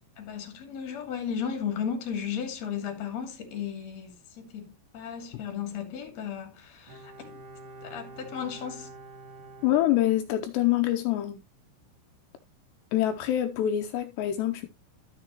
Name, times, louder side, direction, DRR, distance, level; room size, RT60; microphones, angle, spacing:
voice 1, 0.2-7.4 7.8-8.9, left 7 dB, 40° left, 3.0 m, -35 dB
Bowed string instrument, 6.9-10.6 10.9-11.0, right 2 dB, 45° right, 2.9 m, -47 dB
voice 2, 9.6-11.4 12.9-14.7, left 13 dB, 80° left, 2.5 m, -25 dB
13.5 x 6.4 x 3.0 m
omnidirectional pair, 5.8 m